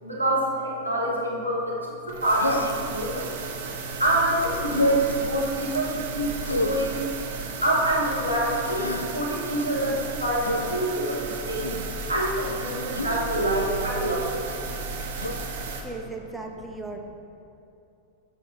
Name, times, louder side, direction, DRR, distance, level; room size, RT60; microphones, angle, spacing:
voice 1, 0.0-3.3 4.0-14.5 14.8-14.9 15.3-15.4, right 1 dB, 85° right, -5 dB, 1.4 m, -26 dB
sound 1, 2.1-15.8, right 4 dB, 55° right, 0.8 m, -34 dB
Human voice, 2.4-2.9 4.7-5.0 6.5-6.9 8.5-9.1 10.4-10.7 11.6-11.9 12.9-13.6 15.2-15.4, left 2 dB, 80° left, 0.4 m, -29 dB
voice 2, 15.8-17.0, right 3 dB, 5° right, 2 dB, 0.6 m, -36 dB
8.2 x 4.5 x 4.3 m, 2.7 s
figure-of-eight pair, 90°, 0 cm